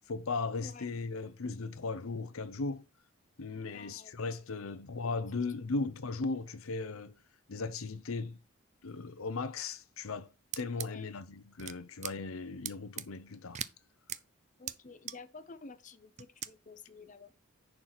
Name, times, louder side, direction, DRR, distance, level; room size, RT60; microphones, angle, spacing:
voice 1, 0.0-2.8 3.4-7.1 7.5-8.4 8.8-10.3 10.6-13.6, left 3 dB, 80° left, 0.7 m, -37 dB
voice 2, 3.7-4.1 10.8-11.1 14.6-17.3, left 3 dB, 35° left, 0.7 m, -51 dB
sound 1, 10.5-10.9 11.6-11.7 12.0-12.1 12.6-13.0 13.5-13.7 14.1-14.2 14.7-14.8 15.1-15.2 16.2-16.5, right 10 dB, 35° right, 0.5 m, -38 dB
10.5 x 4.6 x 4.0 m
head